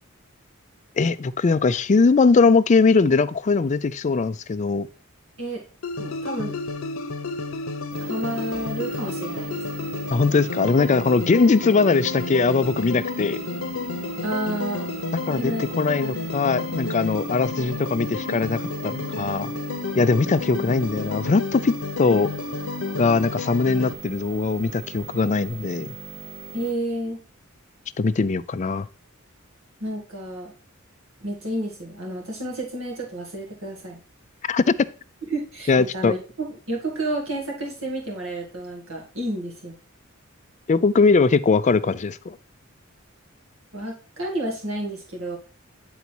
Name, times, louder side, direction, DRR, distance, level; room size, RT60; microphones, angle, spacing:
voice 1, 1.0-4.9 10.1-13.4 15.3-19.5 20.0-22.3 23.0-25.9 28.0-28.9 34.5-34.9 35.7-36.1 40.7-42.4, left 4 dB, 35° left, 0.4 m, -20 dB
sound 1, 5.8-23.9, left 3 dB, 85° left, 0.8 m, -31 dB
voice 2, 6.0-6.5 8.0-9.6 14.2-14.9 15.3-15.8 26.5-27.2 29.8-30.5 31.2-34.0 35.2-39.7 43.7-45.4, right 1 dB, 80° right, 2.1 m, -30 dB
sound 2, 7.9-26.7, right 3 dB, 50° right, 2.7 m, -39 dB
9.5 x 4.0 x 4.5 m
head